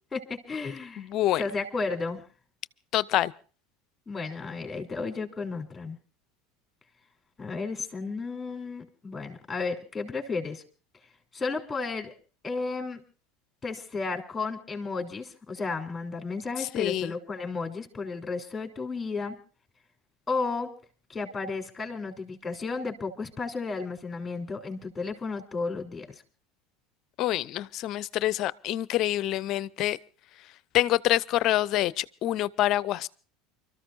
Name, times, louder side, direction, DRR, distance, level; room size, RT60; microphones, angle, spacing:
voice 1, 0.1-1.1 1.4-2.2 4.1-6.0 7.4-10.6 11.3-12.1 12.4-13.0 13.6-19.4 20.3-20.7 21.1-26.2, left 4 dB, 15° left, 3.5 m, -33 dB
voice 2, 1.0-1.4 2.9-3.3 16.6-17.1 27.2-30.0 30.7-33.1, left 14 dB, 50° left, 0.6 m, -26 dB
29.5 x 13.5 x 2.6 m
hypercardioid pair, 80°, 0 cm